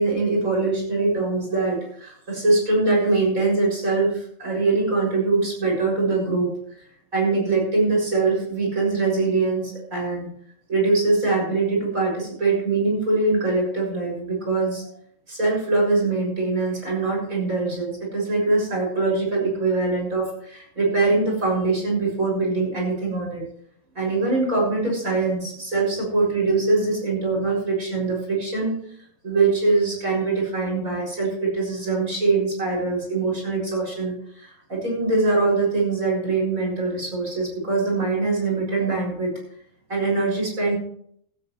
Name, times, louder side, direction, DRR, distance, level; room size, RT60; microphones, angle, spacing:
voice 1, 0.0-6.8 7.1-10.3 10.7-14.9 15.3-23.4 24.0-28.7 29.2-39.3 39.9-40.8, right 3 dB, 20° right, -3 dB, 6.8 m, -23 dB
17.5 x 13.0 x 3.2 m, 0.66 s
omnidirectional pair, 4.7 m